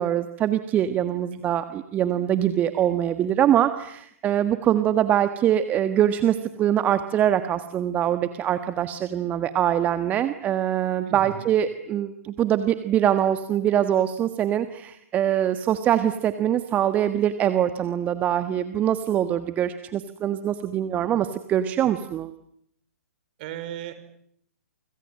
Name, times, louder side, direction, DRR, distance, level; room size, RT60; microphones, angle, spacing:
voice 1, 0.0-22.3, right 10 dB, 20° right, 10 dB, 1.4 m, -23 dB
voice 2, 11.1-11.5 23.4-23.9, right 11 dB, 40° right, 11 dB, 4.9 m, -35 dB
29.5 x 26.0 x 7.7 m, 0.72 s
figure-of-eight pair, 125°, 8 cm